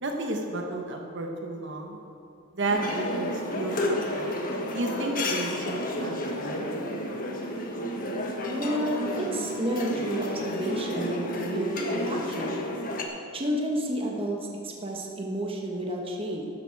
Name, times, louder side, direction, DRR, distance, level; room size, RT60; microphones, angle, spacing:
voice 1, 0.0-2.0 2.5-4.3 4.7-6.7, right 2 dB, 55° right, 2 dB, 1.3 m, -32 dB
sound 1, 2.7-13.0, left 1 dB, 40° left, 1.3 m, -31 dB
voice 2, 8.5-12.6 13.3-14.4 14.6-16.5, right 1 dB, 25° right, -1 dB, 1.3 m, -30 dB
12.5 x 11.0 x 4.8 m, 2.6 s
head